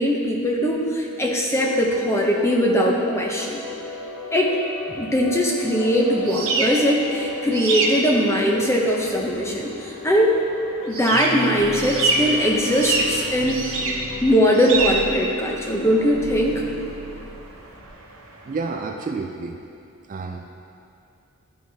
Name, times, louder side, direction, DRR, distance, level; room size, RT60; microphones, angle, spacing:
voice 1, 0.0-3.6 4.3-4.6 4.9-10.4 10.8-13.8 14.2-16.6, equal, 10° left, -1 dB, 0.6 m, -21 dB
sound 1, 1.6-16.0, left 4 dB, 85° left, 0.6 m, -37 dB
sound 2, 5.6-18.8, right 3 dB, 65° right, 0.8 m, -28 dB
sound 3, 11.1-17.9, right 1 dB, 15° right, 0.8 m, -35 dB
voice 2, 18.4-19.6 20.1-20.4, right 4 dB, 35° right, 3 dB, 0.3 m, -29 dB
11.5 x 4.7 x 2.7 m, 2.7 s
head